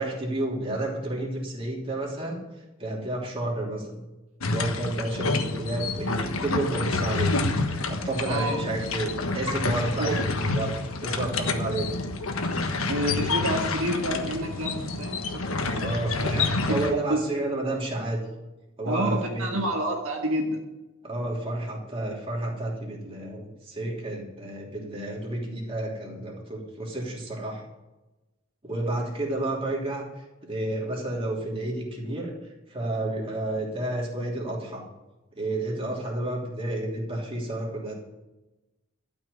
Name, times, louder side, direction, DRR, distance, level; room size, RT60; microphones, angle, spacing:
voice 1, 0.0-2.4 2.8-4.0 4.5-7.4 7.9-11.9 15.7-18.2 18.8-19.6 21.0-27.7 28.6-32.3 32.7-34.8 35.3-37.9, right 1 dB, 25° right, -2 dB, 2.9 m, -31 dB
sound 1, 4.4-16.9, left 3 dB, 80° left, 1.4 m, -28 dB
voice 2, 8.2-8.6 10.0-10.2 12.9-15.4 15.8-15.9 16.7-16.8 17.1-17.2 18.9-20.6, right 1 dB, 75° right, 1 dB, 1.6 m, -28 dB
12.5 x 6.2 x 9.5 m, 1.0 s
head